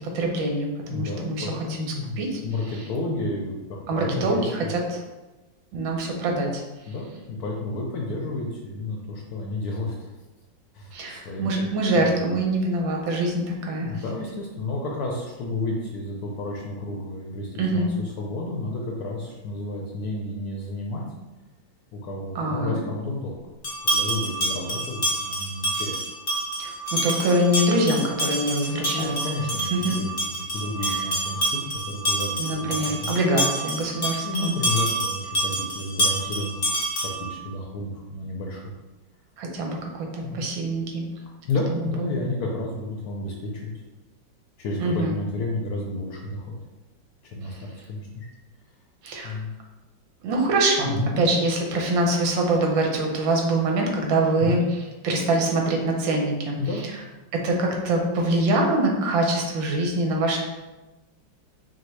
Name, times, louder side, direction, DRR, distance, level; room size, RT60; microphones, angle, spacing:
voice 1, 0.1-1.9 2.2-2.4 3.9-5.0 5.7-6.5 10.9-14.0 17.6-17.9 22.3-22.8 26.6-29.2 29.7-29.9 32.4-34.6 39.4-41.1 41.7-42.1 44.8-45.2 49.0-49.4 50.2-54.6 55.0-56.6 57.3-60.4, right 1 dB, 80° right, 1 dB, 1.5 m, -24 dB
voice 2, 0.8-4.7 6.9-10.1 10.7-11.5 12.0-12.3 13.7-21.1 21.9-23.4 23.8-26.0 28.9-33.1 34.2-36.7 37.0-38.7 40.2-40.5 41.4-43.7 44.6-46.5 47.2-48.3 49.2-49.5 50.8-51.1 54.4-54.6 56.6-56.8, left 2 dB, 70° left, -1 dB, 0.9 m, -31 dB
sound 1, 23.6-37.3, right 1 dB, 40° left, 0.8 m, -27 dB
5.8 x 2.3 x 3.2 m, 1.1 s
omnidirectional pair, 2.1 m